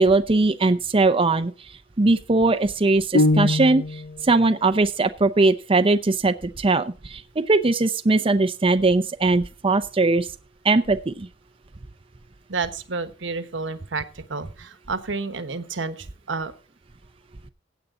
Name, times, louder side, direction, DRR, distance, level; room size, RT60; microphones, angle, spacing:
voice 1, 0.0-1.5 2.0-3.8 4.2-10.3 10.6-11.3, right 3 dB, 30° right, 8 dB, 0.6 m, -20 dB
sound 1, 3.1-4.2, left 2 dB, 55° left, 1.0 m, -21 dB
voice 2, 12.5-16.5, right 4 dB, 90° right, 10 dB, 1.2 m, -30 dB
16.0 x 8.3 x 3.7 m, 0.33 s
head